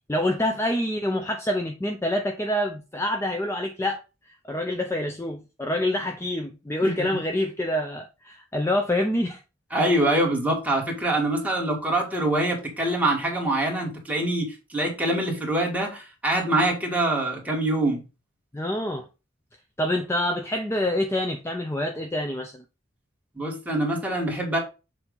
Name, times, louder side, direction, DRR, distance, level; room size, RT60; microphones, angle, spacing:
voice 1, 0.1-9.4 18.5-19.1 19.8-22.6, left 1 dB, 15° left, 0.6 m, -26 dB
voice 2, 9.7-18.0 23.4-24.6, right 1 dB, 10° right, 1.8 m, -24 dB
7.1 x 2.8 x 5.3 m
head